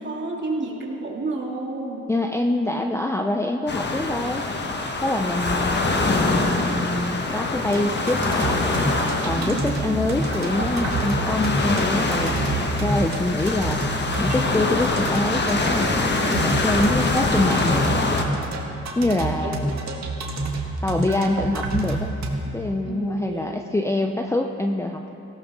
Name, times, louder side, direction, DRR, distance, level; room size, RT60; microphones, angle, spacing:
voice 1, 0.0-2.1 9.3-9.8 19.2-19.6 20.1-20.3 22.8-23.7, right 2 dB, 40° right, -2 dB, 2.7 m, -31 dB
voice 2, 2.1-4.5 5.0-8.6 9.2-13.8 14.2-16.1 16.4-17.9 19.0-19.7 20.8-22.1 22.5-25.2, left 1 dB, 10° left, 3 dB, 0.6 m, -25 dB
sound 1, 3.7-18.2, left 3 dB, 35° left, 1.5 m, -24 dB
sound 2, 7.7-22.3, right 2 dB, 65° right, 1.9 m, -28 dB
17.5 x 15.5 x 3.7 m, 2.9 s
cardioid pair, 90°, 30 cm